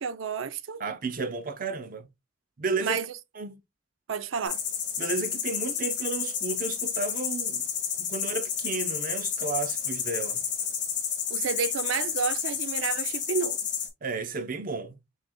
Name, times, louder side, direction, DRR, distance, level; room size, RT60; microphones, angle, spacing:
voice 1, 0.0-0.8 2.8-3.1 4.1-4.6 11.3-13.6, right 6 dB, 85° right, 0.5 m, -30 dB
voice 2, 0.8-2.1 2.6-3.0 3.3-3.6 5.0-7.7 8.0-10.4 14.0-15.0, right 4 dB, 45° right, 0.6 m, -32 dB
sound 1, 4.4-13.9, left 8 dB, 40° left, 1.5 m, -31 dB
6.2 x 3.7 x 2.2 m
head